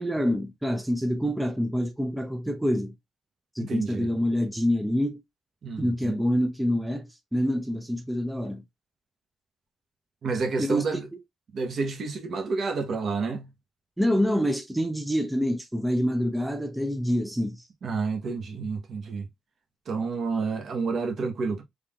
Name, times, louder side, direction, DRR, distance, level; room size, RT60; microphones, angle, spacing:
voice 1, 0.0-3.0 3.5-5.2 5.8-8.6 10.6-10.8 14.0-17.6, equal, 5° right, 0.6 m, -26 dB
voice 2, 3.6-4.1 5.6-6.2 10.2-11.1 11.5-13.5 17.8-19.3 19.9-21.6, right 4 dB, 55° right, 1.1 m, -29 dB
3.7 x 3.4 x 2.4 m
cardioid pair, 90°, 0 cm